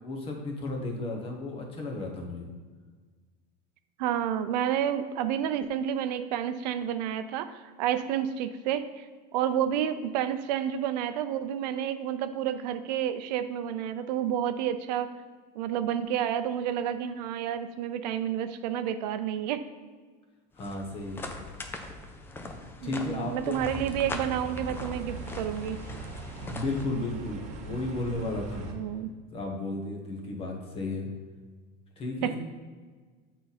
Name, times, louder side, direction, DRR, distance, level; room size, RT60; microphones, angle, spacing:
voice 1, 0.0-2.5 20.5-21.3 22.3-22.6 22.8-23.9 26.4-28.8 29.3-31.1 32.0-32.4, left 2 dB, 25° left, 1 dB, 1.1 m, -34 dB
voice 2, 4.0-9.1 9.3-15.1 15.5-19.6 22.8-25.8 28.7-29.1 32.2-32.3, right 10 dB, 85° right, 10 dB, 0.6 m, -30 dB
sound 1, 20.5-26.9, left 3 dB, 10° left, 0.4 m, -42 dB
sound 2, 23.6-28.7, right 2 dB, 35° right, 1.0 m, -40 dB
7.9 x 4.1 x 4.1 m, 1.5 s
supercardioid pair, 160°, 21 cm